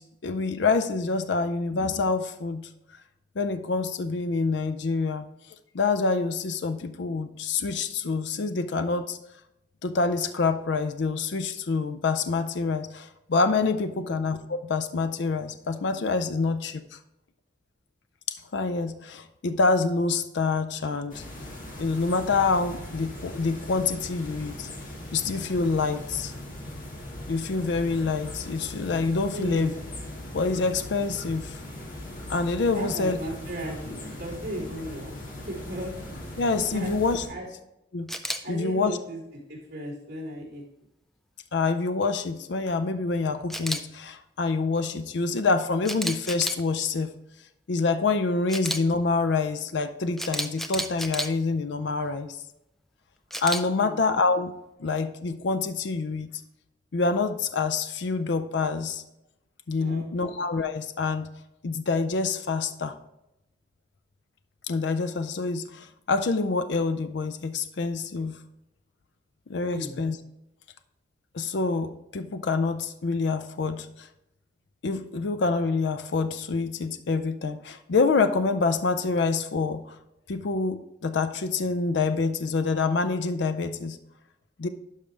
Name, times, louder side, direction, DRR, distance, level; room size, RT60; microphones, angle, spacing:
voice 1, 0.0-2.7 3.4-5.3 5.7-9.2 9.8-17.0 18.3-21.2 21.8-24.7 25.1-26.3 27.3-29.7 30.3-31.6 32.3-33.2 36.4-37.2 37.9-38.1 38.5-39.0 41.5-47.1 47.7-52.4 53.4-54.5 54.8-56.3 56.9-59.0 59.7-61.3 61.6-63.0 64.7-68.4 69.5-70.2 71.3-74.1 74.8-79.9 80.3-84.0 84.6-84.7, left 4 dB, 70° left, 10 dB, 0.5 m, -26 dB
sound 1, 21.1-37.3, left 1 dB, 45° left, 1.7 m, -39 dB
voice 2, 29.3-29.8 32.7-33.8 34.2-35.1 35.5-35.9 36.7-37.0 37.3-37.5 38.4-40.6 53.7-54.0 59.8-60.3 69.7-70.0, right 1 dB, 60° right, -7 dB, 3.3 m, -36 dB
Camera, 38.1-38.4 43.5-43.8 45.8-46.6 48.5-48.8 50.2-51.3 53.3-53.6, equal, ahead, 0.4 m, -30 dB
12.0 x 5.0 x 3.3 m, 0.86 s
head